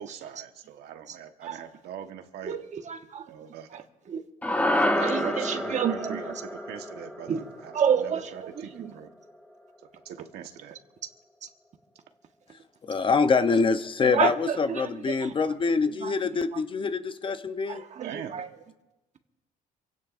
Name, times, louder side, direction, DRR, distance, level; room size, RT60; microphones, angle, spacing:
voice 1, 0.0-2.6 3.3-3.9 4.9-9.1 9.8-10.8 18.0-18.4, right 9 dB, 75° right, 6 dB, 1.2 m, -42 dB
voice 2, 2.4-3.3 3.7-3.8 4.1-4.2 5.0-6.4 7.3-7.4 7.7-8.9 14.0-15.3 15.8-16.6 17.7-18.5, right 7 dB, 45° right, 6 dB, 1.4 m, -30 dB
sound 1, 4.4-8.9, left 1 dB, 10° left, 1.0 m, -29 dB
voice 3, 12.9-17.8, left 4 dB, 30° left, 10 dB, 0.8 m, -25 dB
27.5 x 17.0 x 2.5 m, 1.0 s
cardioid pair, 110°, 17 cm